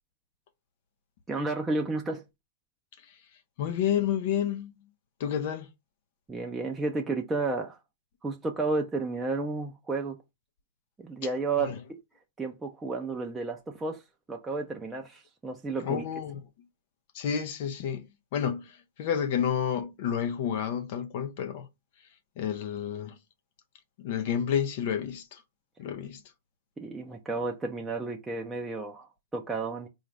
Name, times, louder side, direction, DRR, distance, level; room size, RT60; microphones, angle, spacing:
voice 1, 1.3-2.2 6.3-7.8 8.2-10.2 11.0-11.7 12.4-14.0 14.3-16.0 26.8-29.9, right 3 dB, 10° right, 0.5 m, -32 dB
voice 2, 3.6-4.9 5.2-5.7 11.6-11.8 15.8-16.4 17.1-21.7 22.4-23.2 24.0-25.4 25.8-26.2, left 8 dB, 55° left, 0.5 m, -30 dB
3.9 x 2.4 x 3.2 m
hypercardioid pair, 145°, 0 cm